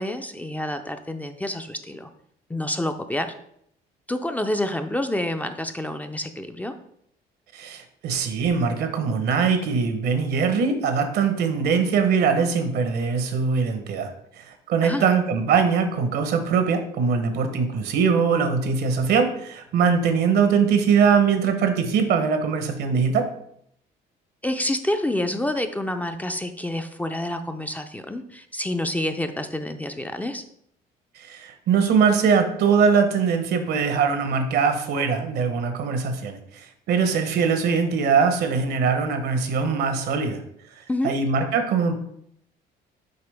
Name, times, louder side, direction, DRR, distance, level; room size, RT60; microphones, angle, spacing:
voice 1, 0.0-2.1 2.5-3.3 4.1-6.7 14.8-15.0 24.4-30.4 40.9-41.1, left 1 dB, 10° left, 7 dB, 0.4 m, -28 dB
voice 2, 7.5-23.3 31.2-40.4 40.8-41.9, right 6 dB, 75° right, 7 dB, 1.0 m, -22 dB
6.8 x 4.6 x 3.4 m, 0.71 s
cardioid pair, 110°, 17 cm